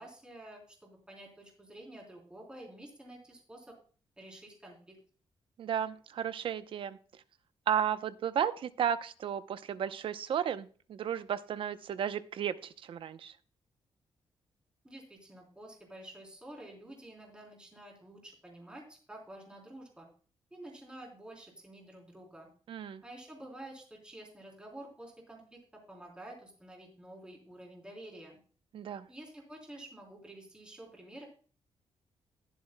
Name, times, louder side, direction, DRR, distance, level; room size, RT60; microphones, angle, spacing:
voice 1, 0.0-3.8 4.2-5.0 14.8-20.1 20.5-22.5 23.0-28.4 29.1-31.2, right 1 dB, 10° right, -1 dB, 3.6 m, -50 dB
voice 2, 5.6-7.0 7.7-13.4 22.7-23.0 28.7-29.1, right 9 dB, 65° right, 13 dB, 0.7 m, -34 dB
20.5 x 7.3 x 2.2 m, 0.40 s
wide cardioid pair, 160°, 10 cm